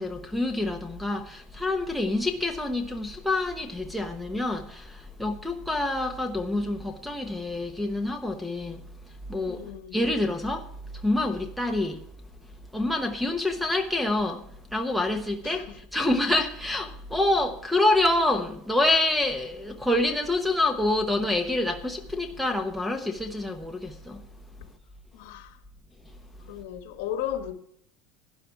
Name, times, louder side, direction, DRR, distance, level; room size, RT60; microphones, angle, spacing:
voice 1, 0.0-12.1 12.7-24.3 26.1-26.6, left 2 dB, ahead, 0.9 m, -27 dB
voice 2, 9.5-10.0 15.4-15.6 25.1-25.6 26.4-27.5, left 10 dB, 70° left, 1.5 m, -35 dB
12.5 x 10.0 x 4.5 m
cardioid pair, 170°, 0 cm